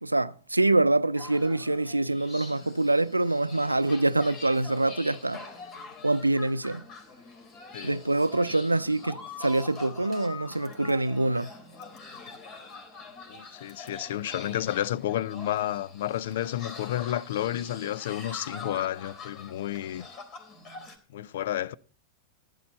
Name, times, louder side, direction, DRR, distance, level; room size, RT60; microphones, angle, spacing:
voice 1, 0.0-5.4 6.0-6.8 7.8-11.5, right 2 dB, 90° right, 0.6 m, -25 dB
sound 1, 1.1-21.0, left 4 dB, 35° left, 3.5 m, -45 dB
voice 2, 13.3-20.1 21.1-21.7, left 12 dB, 60° left, 0.6 m, -31 dB
15.5 x 11.5 x 4.2 m
figure-of-eight pair, 95°, 0 cm